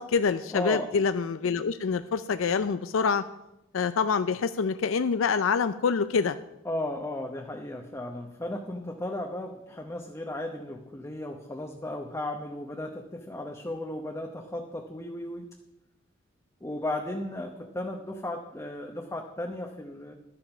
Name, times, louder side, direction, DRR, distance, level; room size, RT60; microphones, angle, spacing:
voice 1, 0.0-3.2 3.7-6.4, left 5 dB, 65° left, 12 dB, 0.4 m, -26 dB
voice 2, 0.5-0.9 1.4-1.6 6.6-15.5 16.6-20.1, left 1 dB, 15° left, 2 dB, 0.9 m, -35 dB
12.0 x 8.8 x 6.0 m, 0.89 s
head